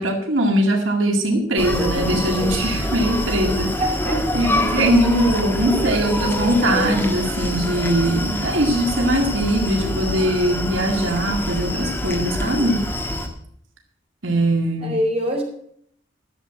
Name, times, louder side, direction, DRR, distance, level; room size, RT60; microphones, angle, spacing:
voice 1, 0.0-3.7 4.3-12.8 14.2-15.0, right 1 dB, 90° right, 2 dB, 2.1 m, -21 dB
Screaming, 1.6-13.3, left 1 dB, 10° left, 1.4 m, -25 dB
voice 2, 3.8-4.4 14.8-15.4, equal, 30° right, -1 dB, 3.9 m, -24 dB
12.0 x 7.4 x 7.4 m, 0.65 s
head